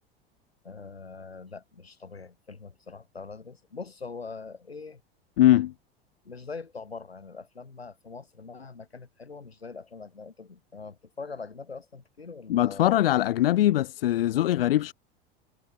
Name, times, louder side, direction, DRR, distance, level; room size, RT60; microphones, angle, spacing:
voice 1, 0.6-5.0 6.2-12.9, left 4 dB, 90° left, 5.7 m, -42 dB
voice 2, 5.4-5.7 12.5-14.9, left 13 dB, 70° left, 1.7 m, -22 dB
figure-of-eight pair, 80°, 30 cm